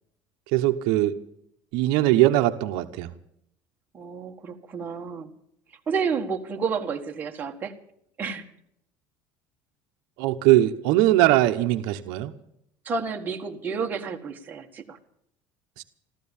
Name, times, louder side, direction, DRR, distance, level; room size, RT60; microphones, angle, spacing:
voice 1, 0.5-1.2 1.7-3.1 10.2-12.3 15.8-15.9, right 15 dB, 70° right, 8 dB, 1.0 m, -21 dB
voice 2, 3.9-5.3 5.9-7.7 8.2-8.4 12.8-15.0, right 5 dB, 20° right, 2 dB, 1.6 m, -30 dB
14.5 x 13.5 x 7.2 m, 0.74 s
cardioid pair, 150°, 8 cm